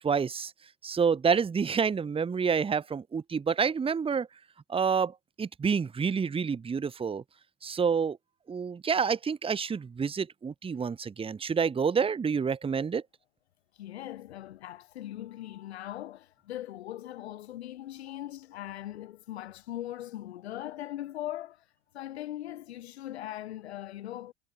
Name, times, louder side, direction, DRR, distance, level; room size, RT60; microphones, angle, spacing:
voice 1, 0.0-0.5 0.8-4.3 4.7-7.2 7.6-8.2 8.5-13.0, right 6 dB, 15° right, 1.3 m, -28 dB
voice 2, 13.8-21.6 21.9-24.3, left 13 dB, 70° left, 2.7 m, -40 dB
figure-of-eight pair, 80°, 33 cm